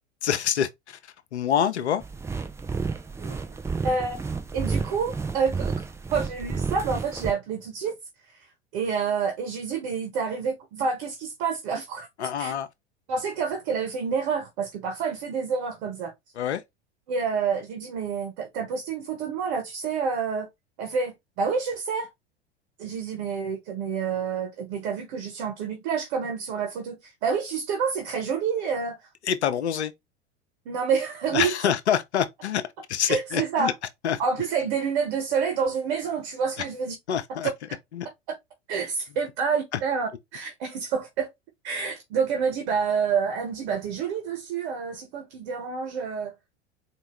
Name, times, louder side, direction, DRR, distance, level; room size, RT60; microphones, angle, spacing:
voice 1, 0.2-2.0 12.2-12.7 16.4-16.6 29.3-29.9 31.3-32.6 32.9-33.7 34.0-34.2 36.6-36.7 37.1-37.5 37.9-38.1, left 9 dB, 80° left, 0.6 m, -26 dB
sound 1, 2.0-7.3, right 4 dB, 10° right, 0.4 m, -31 dB
voice 2, 3.8-4.2 4.5-5.8 6.1-7.9 8.3-8.5 8.7-12.1 12.4-12.5 13.1-16.1 17.1-20.5 20.8-22.1 22.8-29.0 30.6-31.5 33.1-33.7 34.2-36.9 38.7-41.3 41.6-46.3, right 6 dB, 55° right, 1.3 m, -28 dB
4.4 x 2.8 x 3.1 m
hypercardioid pair, 85°, 33 cm